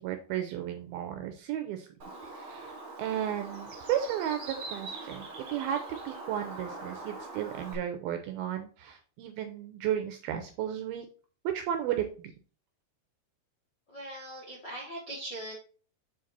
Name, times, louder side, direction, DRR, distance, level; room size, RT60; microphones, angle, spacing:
voice 1, 0.0-1.9 2.3-11.1 11.5-12.3, right 10 dB, 80° right, 6 dB, 2.2 m, -34 dB
Bird, 2.0-7.7, right 3 dB, 55° right, 1.2 m, -42 dB
voice 2, 13.9-15.5, right 1 dB, 50° left, -6 dB, 1.2 m, -40 dB
7.1 x 3.9 x 4.0 m, 0.39 s
omnidirectional pair, 4.8 m